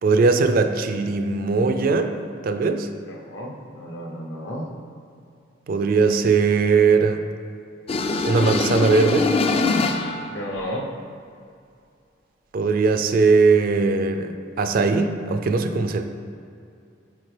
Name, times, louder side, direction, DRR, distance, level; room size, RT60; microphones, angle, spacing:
voice 1, 0.0-2.1 2.4-2.9 5.7-7.3 8.2-9.3 12.5-16.0, right 4 dB, 50° right, 7 dB, 0.3 m, -20 dB
voice 2, 3.1-4.7 10.3-10.9, equal, 70° left, -1 dB, 0.8 m, -32 dB
sound 1, 7.9-10.3, left 3 dB, 30° left, 0.3 m, -23 dB
8.7 x 3.6 x 3.3 m, 2.4 s
head